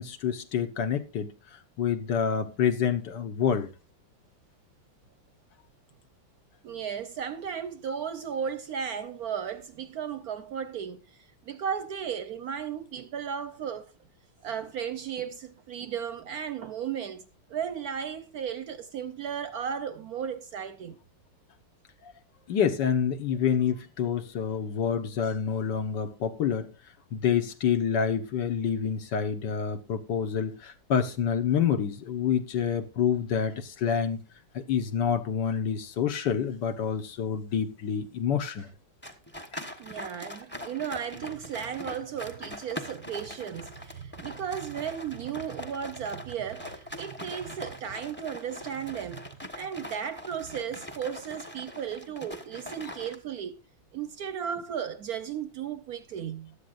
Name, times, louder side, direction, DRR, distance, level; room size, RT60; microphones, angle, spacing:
voice 1, 0.0-1.3 1.8-3.7 22.5-26.7 27.1-34.2 34.5-38.7 39.5-39.6, left 7 dB, 65° left, 1.7 m, -27 dB
voice 2, 6.6-11.0 11.5-13.9 14.4-21.0 39.8-49.3 49.6-53.6 53.9-56.6, right 8 dB, 65° right, 1.0 m, -35 dB
sound 1, 39.0-53.2, left 1 dB, 10° left, 0.9 m, -42 dB
16.0 x 11.5 x 2.5 m
omnidirectional pair, 2.1 m